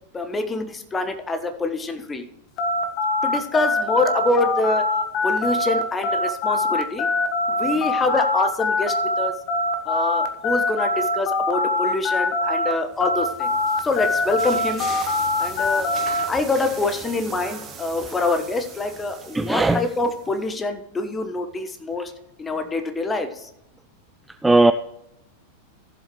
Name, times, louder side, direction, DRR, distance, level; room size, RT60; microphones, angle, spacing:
voice 1, 0.1-2.2 3.2-4.8 5.2-7.1 7.5-9.4 9.8-13.5 13.8-14.9 15.4-16.0 16.3-22.1 22.4-23.5, left 2 dB, 15° left, 1.3 m, -25 dB
sound 1, 2.6-12.7 13.0-16.3, left 2 dB, 40° left, 1.2 m, -23 dB
sound 2, 12.9-20.5, right 6 dB, 25° right, 1.7 m, -40 dB
voice 2, 19.3-19.8 24.4-24.7, right 2 dB, 10° right, 0.4 m, -17 dB
15.0 x 7.6 x 3.1 m
figure-of-eight pair, 90°, 0 cm